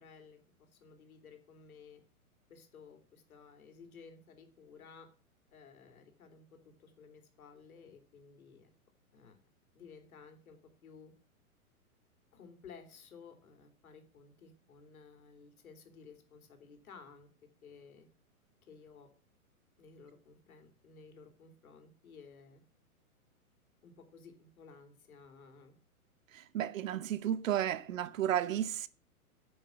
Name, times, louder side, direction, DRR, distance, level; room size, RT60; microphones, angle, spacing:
voice 1, 0.0-2.0 2.5-5.1 5.5-8.7 9.1-9.4 9.7-11.1 12.3-17.3 17.6-18.1 18.7-19.1 19.8-22.6 23.8-25.8 26.9-27.0 27.9-28.6, left 5 dB, 70° left, 3.5 m, -56 dB
voice 2, 26.3-28.9, right 11 dB, 60° right, 0.9 m, -33 dB
10.5 x 7.7 x 5.9 m
hypercardioid pair, 120°, 44 cm